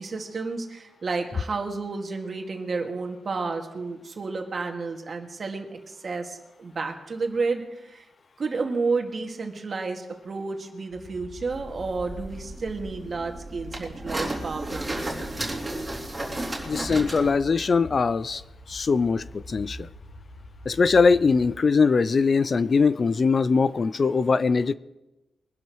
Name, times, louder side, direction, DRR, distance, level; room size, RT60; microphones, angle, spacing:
voice 1, 0.0-8.1 8.4-15.2, right 4 dB, 45° right, 2 dB, 2.1 m, -31 dB
sound 1, 10.9-21.6, equal, 80° left, 5.4 m, -44 dB
sound 2, 11.5-17.3, right 1 dB, 20° right, 3.2 m, -33 dB
voice 2, 16.6-18.4 18.7-19.9 20.7-24.7, left 4 dB, 40° left, 17 dB, 0.4 m, -21 dB
23.0 x 12.0 x 3.1 m, 1.0 s
cardioid pair, 110°, 0 cm